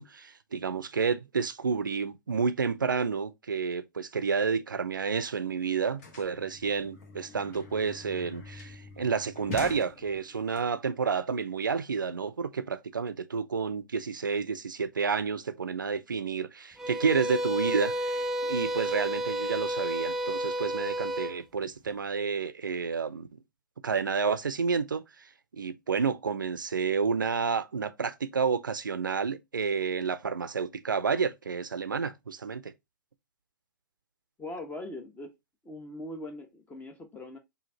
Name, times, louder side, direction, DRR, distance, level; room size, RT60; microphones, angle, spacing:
voice 1, 0.0-23.3 23.8-32.7, right 5 dB, 80° right, 0.5 m, -30 dB
sound 1, 5.1-5.2 5.4-10.6, left 3 dB, 50° left, 1.5 m, -44 dB
sound 2, 16.8-21.4, equal, 5° right, 0.4 m, -31 dB
voice 2, 34.4-35.3 35.6-37.4, left 1 dB, 15° left, 1.0 m, -41 dB
4.9 x 2.8 x 2.8 m
figure-of-eight pair, 110°, 11 cm